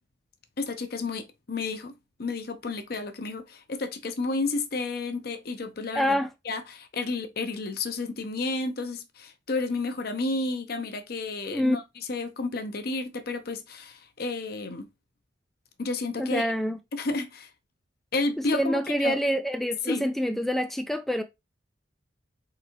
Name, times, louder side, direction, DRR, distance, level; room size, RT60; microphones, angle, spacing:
voice 1, 0.6-6.2 6.5-11.8 12.1-14.9 15.8-16.5 16.9-17.5 18.1-19.2 19.9-20.1, left 3 dB, 60° left, 0.8 m, -31 dB
voice 2, 5.9-6.3 11.5-11.8 16.2-16.8 18.4-21.2, equal, ahead, 0.3 m, -26 dB
4.5 x 3.8 x 3.0 m
head